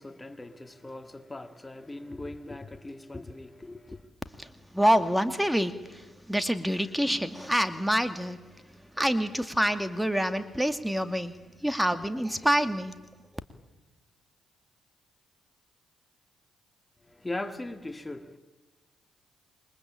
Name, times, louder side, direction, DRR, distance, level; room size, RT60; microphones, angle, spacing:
voice 1, 0.0-4.1 17.0-18.4, left 2 dB, 20° left, 2.4 m, -39 dB
voice 2, 4.7-8.4 9.0-11.4 11.6-13.0, equal, 5° right, 2.4 m, -26 dB
28.0 x 23.5 x 8.9 m
hypercardioid pair, 45°, 0 cm